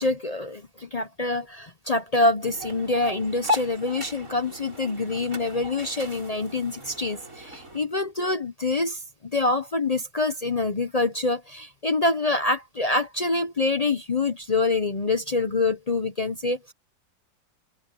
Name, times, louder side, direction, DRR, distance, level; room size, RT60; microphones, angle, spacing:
voice 1, 0.0-16.7, left 3 dB, 50° left, 0.4 m, -26 dB
sound 1, 2.4-7.8, left 2 dB, 50° right, 7.5 m, -35 dB
omnidirectional pair, 1.9 m